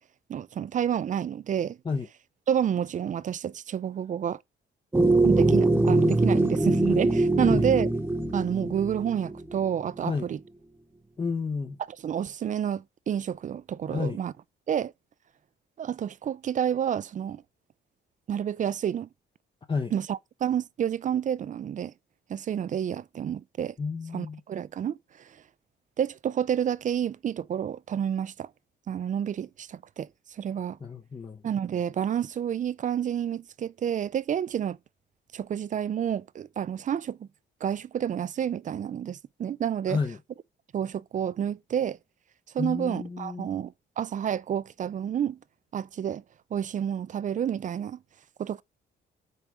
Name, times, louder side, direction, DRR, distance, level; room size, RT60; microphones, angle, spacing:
voice 1, 0.3-1.8 2.5-4.4 5.2-7.9 8.3-10.4 12.0-14.3 14.7-14.9 15.8-17.4 18.3-19.1 19.9-21.9 22.3-23.7 24.1-25.0 26.0-28.5 28.9-30.1 30.4-30.8 31.4-34.8 35.3-37.3 37.6-40.0 40.7-42.0 42.5-45.4 45.7-46.2 46.5-48.0 48.4-48.6, right 9 dB, 40° right, 0.4 m, -29 dB
sound 1, 4.9-9.6, right 2 dB, 10° right, 1.0 m, -23 dB
voice 2, 7.4-7.7 10.0-10.3 11.2-11.8 13.9-14.2 19.7-19.9 23.8-24.4 30.8-31.4 39.9-40.2 42.6-43.5, left 4 dB, 25° left, 0.6 m, -31 dB
5.4 x 4.5 x 6.1 m
cardioid pair, 90°, 20 cm